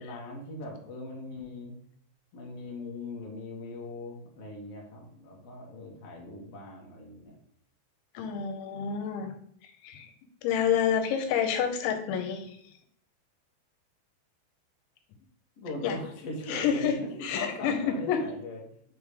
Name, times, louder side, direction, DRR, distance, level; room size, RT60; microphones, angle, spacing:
voice 1, 0.0-1.7 2.3-7.4 8.3-8.4 15.6-18.6, left 2 dB, 65° left, -2 dB, 1.6 m, -40 dB
voice 2, 8.1-9.3 9.6-10.1 10.4-12.6 15.8-16.0 16.5-18.2, left 8 dB, 85° left, 6 dB, 3.1 m, -29 dB
6.5 x 3.4 x 4.9 m, 0.67 s
omnidirectional pair, 5.2 m